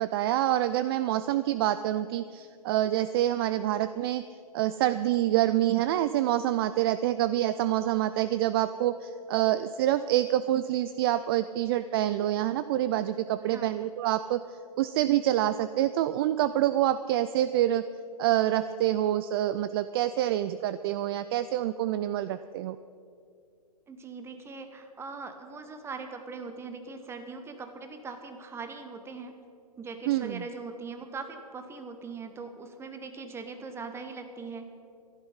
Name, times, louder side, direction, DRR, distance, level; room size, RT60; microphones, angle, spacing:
voice 1, 0.0-4.2 4.5-14.4 14.8-17.8 18.2-22.8 30.1-30.4, right 13 dB, 40° right, 13 dB, 0.4 m, -26 dB
voice 2, 23.9-29.3 29.8-34.7, right 4 dB, 15° right, 7 dB, 1.2 m, -41 dB
14.0 x 11.5 x 5.7 m, 2.3 s
hypercardioid pair, 120°, 20 cm